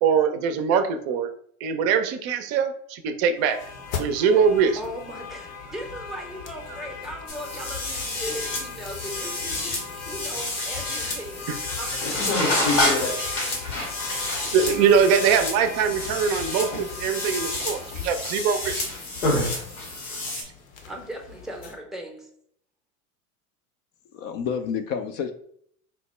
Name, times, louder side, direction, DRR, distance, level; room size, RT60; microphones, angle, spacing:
voice 1, 0.0-1.3 1.6-3.6 4.0-4.8 13.2-13.3 14.5-18.8, right 6 dB, 50° right, 8 dB, 0.5 m, -22 dB
sound 1, 3.4-21.7, left 6 dB, 65° left, 0.9 m, -39 dB
voice 2, 4.7-13.0 20.8-22.3, right 1 dB, ahead, 2 dB, 0.6 m, -38 dB
sound 2, 7.3-20.4, left 2 dB, 85° left, 1.3 m, -28 dB
voice 3, 24.1-25.3, left 7 dB, 45° left, 7 dB, 0.4 m, -29 dB
4.4 x 2.0 x 3.1 m, 0.65 s
hypercardioid pair, 90°, 44 cm